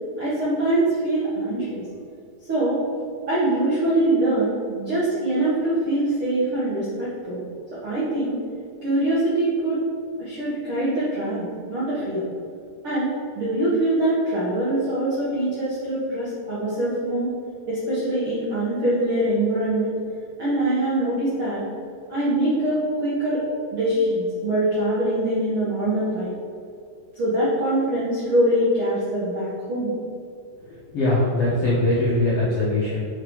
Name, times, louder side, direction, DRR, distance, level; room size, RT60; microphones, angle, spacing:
voice 1, 0.2-1.8 2.5-2.8 3.3-7.4 7.8-8.4 8.8-9.8 10.2-12.2 12.8-13.1 13.3-17.3 17.7-20.0 20.4-21.6 22.1-23.4 23.7-26.3 27.1-29.9, right 1 dB, 70° right, -9 dB, 1.2 m, -23 dB
voice 2, 30.9-33.1, left 2 dB, 90° left, -8 dB, 1.3 m, -21 dB
6.8 x 5.4 x 4.8 m, 2.4 s
omnidirectional pair, 5.2 m